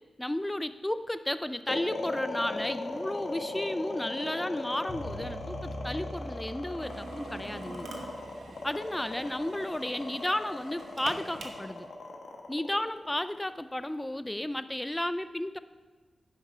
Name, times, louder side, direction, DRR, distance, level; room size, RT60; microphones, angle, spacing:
voice 1, 0.2-7.9 8.6-11.9 12.5-15.6, left 1 dB, 15° left, 12 dB, 0.4 m, -33 dB
sound 1, 1.7-13.9, left 2 dB, 85° left, 1.2 m, -38 dB
sound 2, 4.9-9.3, equal, 45° left, 2.7 m, -43 dB
Drill, 6.8-11.9, right 3 dB, 85° right, 1.0 m, -46 dB
8.9 x 5.8 x 5.6 m, 1.3 s
cardioid pair, 65°, 0 cm